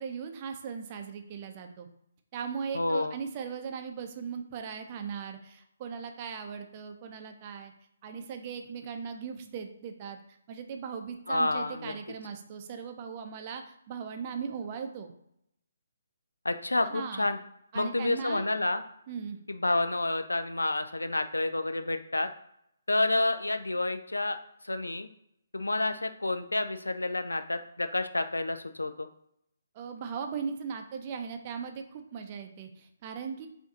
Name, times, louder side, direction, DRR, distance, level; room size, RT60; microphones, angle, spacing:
voice 1, 0.0-1.9 2.3-7.7 8.0-10.2 10.5-15.1 16.9-17.3 17.7-18.5 19.1-19.4 29.7-33.5, right 6 dB, 30° right, 5 dB, 0.6 m, -38 dB
voice 2, 2.7-3.2 11.3-11.9 16.4-17.4 17.7-18.8 19.5-22.3 22.9-24.4 24.6-25.1 25.5-29.1, left 2 dB, 75° left, 9 dB, 0.4 m, -29 dB
4.7 x 2.6 x 3.9 m, 0.74 s
figure-of-eight pair, 135°, 0 cm